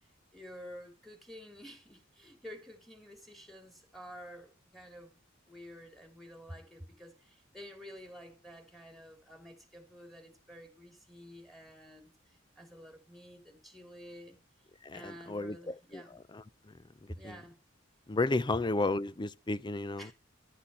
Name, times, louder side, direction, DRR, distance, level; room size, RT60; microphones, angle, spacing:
voice 1, 0.3-5.2 5.5-14.4 14.9-16.2 17.1-17.6 20.0-20.1, equal, ahead, 3.3 m, -50 dB
voice 2, 14.8-15.6 15.9-16.0 16.3-16.4 17.2-17.3 18.1-20.1, left 2 dB, 25° left, 0.5 m, -32 dB
12.0 x 8.1 x 5.5 m
head